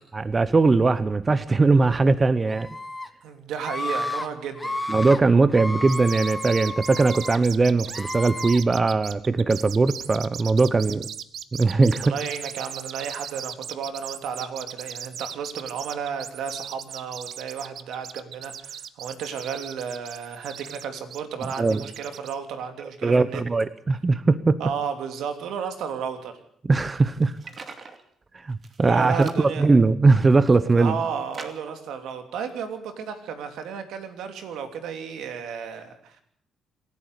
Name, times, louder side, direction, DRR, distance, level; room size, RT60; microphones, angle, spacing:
voice 1, 0.1-2.7 4.9-11.1 11.5-12.1 21.6-21.8 23.0-24.6 26.7-27.3 28.4-30.9, right 3 dB, 30° right, 15 dB, 0.9 m, -20 dB
Screaming, 2.5-3.1 3.6-4.3 4.6-5.2 5.5-7.4 7.9-8.6, left 2 dB, 10° left, 1.9 m, -32 dB
voice 2, 3.2-4.8 10.8-11.0 11.7-23.4 24.6-26.3 28.8-29.8 30.7-36.2, right 7 dB, 80° right, 7 dB, 3.0 m, -33 dB
sound 1, 5.9-22.3, right 9 dB, 65° right, 1.1 m, -38 dB
sound 2, 26.9-28.0 28.5-28.9 29.2-29.4 30.0-30.8 31.3-31.8, right 4 dB, 45° right, 2.6 m, -43 dB
27.0 x 12.0 x 8.3 m, 0.65 s
cardioid pair, 90°, 0 cm